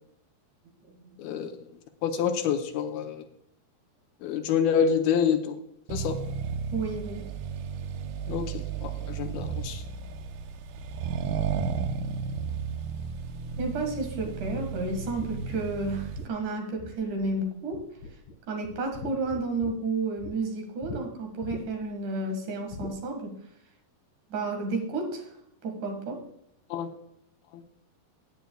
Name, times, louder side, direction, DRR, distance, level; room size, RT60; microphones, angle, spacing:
voice 1, 1.2-1.6 2.0-3.3 4.2-5.6 5.9-6.2 8.3-9.8 26.7-26.9 27.5-27.6, left 7 dB, 80° left, 5 dB, 2.6 m, -27 dB
Accelerating revving vroom, 5.9-16.3, right 6 dB, 90° right, 2.7 m, -33 dB
voice 2, 6.7-7.2 13.6-17.8 18.5-23.4 24.3-25.3 25.6-26.2, right 3 dB, 60° right, 2 dB, 3.0 m, -31 dB
sound 1, 14.2-17.4 17.7-18.3 18.6-20.3 20.8-21.0 21.4-21.9 22.7-23.0, left 2 dB, 65° left, 2.5 m, -41 dB
16.5 x 9.3 x 2.3 m, 0.75 s
omnidirectional pair, 4.5 m